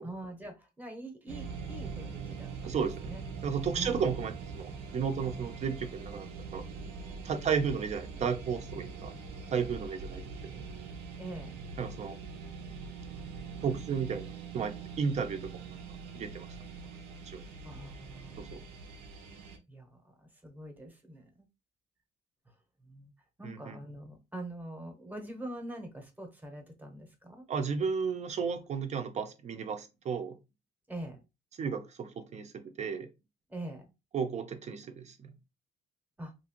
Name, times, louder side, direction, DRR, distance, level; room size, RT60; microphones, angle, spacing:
voice 1, 0.0-3.2 3.7-4.1 11.2-11.6 17.6-18.6 19.7-21.5 22.8-23.1 23.4-27.4 30.9-31.2 33.5-33.8 36.2-36.3, right 1 dB, 10° right, 4 dB, 0.9 m, -44 dB
sound 1, 1.3-19.6, right 5 dB, 80° right, 0.8 m, -43 dB
voice 2, 2.6-3.1 3.4-6.3 6.5-6.6 7.2-9.1 9.5-10.5 11.8-12.2 13.6-14.3 14.5-15.8 16.1-16.5 17.3-17.4 18.4-18.6 23.4-23.8 27.5-30.4 31.6-33.1 34.1-35.2, right 6 dB, 40° right, 8 dB, 0.6 m, -33 dB
2.9 x 2.5 x 2.9 m, 0.25 s
cardioid pair, 110°, 17 cm